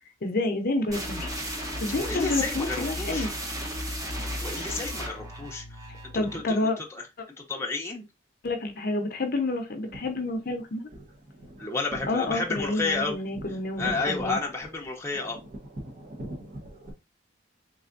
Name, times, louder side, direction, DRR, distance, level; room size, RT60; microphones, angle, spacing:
voice 1, 0.2-1.3 1.8-3.3 6.1-6.8 8.4-10.9 12.1-14.4, left 2 dB, 50° left, 0.6 m, -29 dB
sound 1, 0.9-6.5, equal, 20° right, 0.8 m, -34 dB
voice 2, 1.9-3.3 4.4-5.8 6.1-7.1 7.4-8.0 11.6-13.2 13.5-15.4, left 3 dB, 15° left, 0.6 m, -31 dB
sound 2, 9.7-16.9, right 1 dB, 40° right, 1.0 m, -42 dB
3.6 x 3.3 x 2.5 m
head